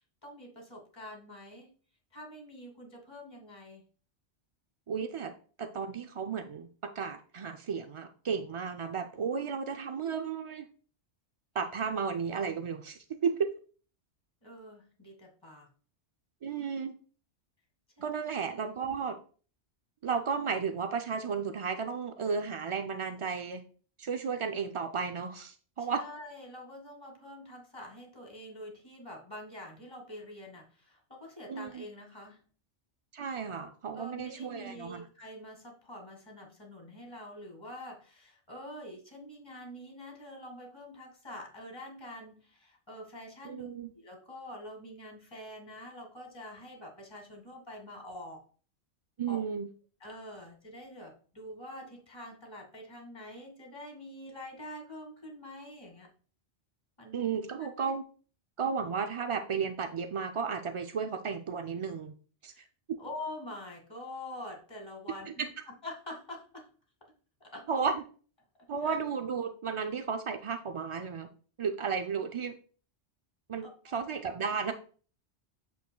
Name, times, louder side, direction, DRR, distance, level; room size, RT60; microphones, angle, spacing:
voice 1, 0.2-1.7 2.1-3.8 14.4-15.7 18.0-18.2 25.8-32.4 33.9-43.7 43.9-48.4 49.3-49.4 50.0-56.1 57.0-57.2 57.6-57.7 63.0-65.5 65.8-66.7 67.4-67.7 68.8-69.0 73.6-74.0, left 1 dB, 25° left, 0 dB, 2.0 m, -46 dB
voice 2, 4.9-5.3 5.6-10.7 11.5-13.5 16.4-17.0 18.0-19.2 20.0-23.6 24.0-26.0 31.5-31.8 33.1-35.0 43.4-43.9 49.2-49.7 57.1-58.0 58.6-62.1 62.4-62.5 62.9-63.0 65.3-65.5 67.7-68.0 68.7-71.3 71.6-72.6 73.5-74.7, right 6 dB, 60° right, 6 dB, 0.3 m, -33 dB
8.1 x 6.7 x 2.2 m, 0.42 s
omnidirectional pair, 1.2 m